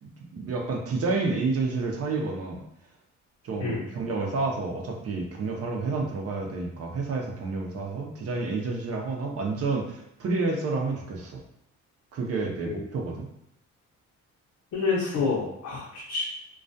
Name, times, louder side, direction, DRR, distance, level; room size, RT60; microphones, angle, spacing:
voice 1, 0.0-2.6 3.4-11.4 12.1-13.3, right 3 dB, 50° right, 1 dB, 0.6 m, -30 dB
voice 2, 14.7-16.2, left 4 dB, 70° left, -6 dB, 0.7 m, -28 dB
2.3 x 2.2 x 2.6 m, 0.76 s
cardioid pair, 90°, 30 cm